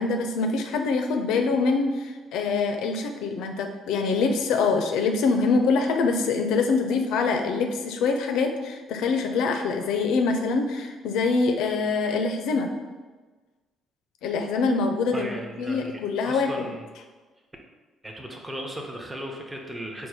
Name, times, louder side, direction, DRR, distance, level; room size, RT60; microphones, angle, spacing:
voice 1, 0.0-12.7 14.2-16.7, left 4 dB, 75° left, 5 dB, 0.4 m, -24 dB
voice 2, 15.1-16.8 18.0-20.1, equal, 15° right, 1 dB, 0.8 m, -37 dB
4.4 x 2.1 x 4.7 m, 1.3 s
hypercardioid pair, 55°, 0 cm